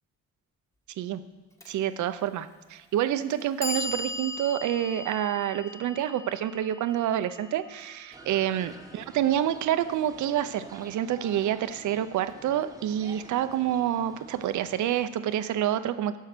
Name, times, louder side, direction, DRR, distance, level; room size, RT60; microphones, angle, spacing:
Clock, 1.6-1.7 2.7-2.8 3.3-9.3, left 2 dB, 10° left, 1.4 m, -39 dB
voice 1, 1.7-16.2, right 11 dB, 75° right, 12 dB, 0.7 m, -28 dB
sound 1, 8.1-15.0, right 2 dB, 10° right, 1.1 m, -48 dB
12.0 x 5.7 x 6.7 m, 1.3 s
cardioid pair, 90°, 30 cm